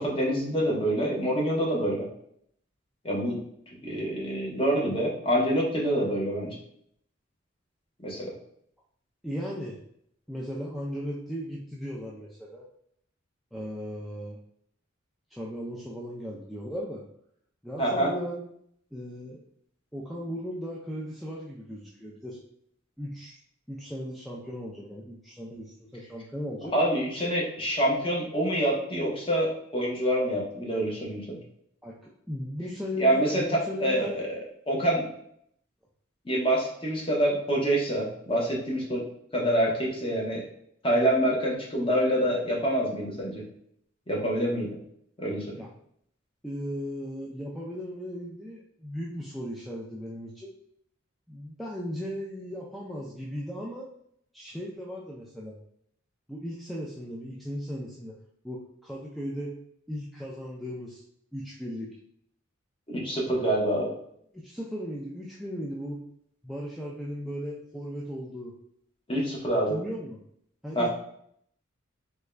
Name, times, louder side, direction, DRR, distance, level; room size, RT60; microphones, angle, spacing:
voice 1, 0.0-2.1 3.0-3.4 3.8-6.6 8.0-8.3 17.8-18.1 26.7-31.4 33.0-34.4 34.7-35.1 36.2-39.0 39.3-40.4 40.8-43.4 44.1-44.7 45.2-45.5 62.9-63.9 69.1-69.8 70.7-70.9, right 1 dB, 25° left, -3 dB, 0.8 m, -26 dB
voice 2, 9.2-9.8 10.3-12.6 13.5-14.4 15.3-17.0 17.6-18.4 18.9-19.4 19.9-22.4 23.0-23.4 23.7-26.7 31.8-34.1 45.5-45.7 46.4-50.5 51.3-53.9 54.3-55.6 56.3-58.1 58.4-59.5 59.9-61.0 61.3-61.9 64.3-66.0 66.4-68.5 69.5-70.2 70.6-70.9, equal, ahead, -5 dB, 0.3 m, -37 dB
3.5 x 2.2 x 3.2 m, 0.69 s
head